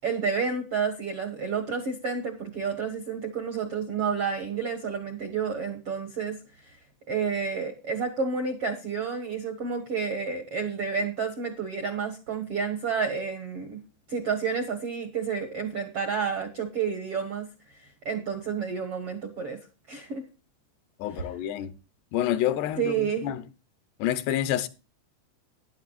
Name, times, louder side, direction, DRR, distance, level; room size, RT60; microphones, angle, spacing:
voice 1, 0.0-6.4 7.1-13.8 14.1-17.5 18.0-19.6 19.9-20.2 21.1-21.3 22.8-23.3, right 5 dB, 70° right, 1.3 m, -30 dB
voice 2, 21.0-21.7 22.1-22.9 23.2-23.4 24.0-24.7, left 11 dB, 80° left, 2.8 m, -27 dB
14.5 x 10.5 x 2.4 m
omnidirectional pair, 4.8 m